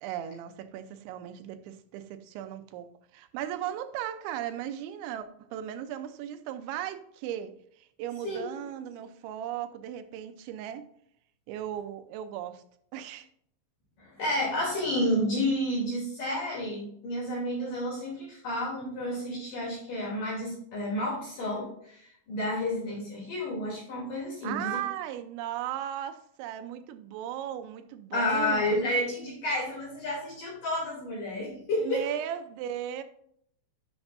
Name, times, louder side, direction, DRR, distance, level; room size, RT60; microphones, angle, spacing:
voice 1, 0.0-10.9 11.5-12.6 12.9-13.3 24.4-28.8 31.8-33.0, right 11 dB, 85° right, 3.1 m, -37 dB
voice 2, 8.2-8.7 14.0-24.8 28.1-32.1, left 1 dB, 50° left, 4.3 m, -30 dB
10.5 x 7.0 x 2.6 m
omnidirectional pair, 5.2 m